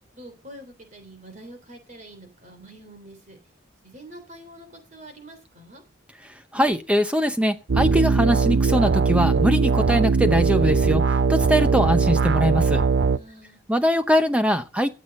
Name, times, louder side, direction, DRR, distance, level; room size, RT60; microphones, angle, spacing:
voice 1, 0.1-3.4 3.8-5.8 13.1-13.6, right 1 dB, 40° right, 7 dB, 3.3 m, -45 dB
voice 2, 6.2-12.8 13.7-14.9, equal, 5° right, 9 dB, 0.6 m, -22 dB
sound 1, 7.7-13.2, right 4 dB, 60° right, 0.6 m, -20 dB
16.5 x 7.3 x 5.3 m, 0.32 s
head